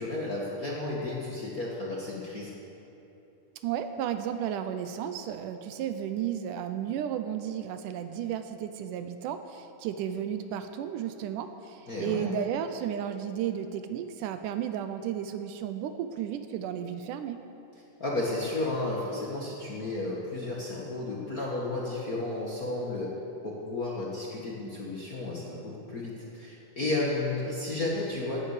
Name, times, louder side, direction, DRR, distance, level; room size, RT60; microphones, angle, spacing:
voice 1, 0.0-2.5 11.9-12.4 18.0-23.1 23.4-28.4, left 2 dB, 40° left, -5 dB, 1.3 m, -33 dB
voice 2, 3.6-17.4, right 9 dB, 80° right, 9 dB, 2.1 m, -33 dB
17.0 x 9.8 x 6.6 m, 3.0 s
omnidirectional pair, 3.8 m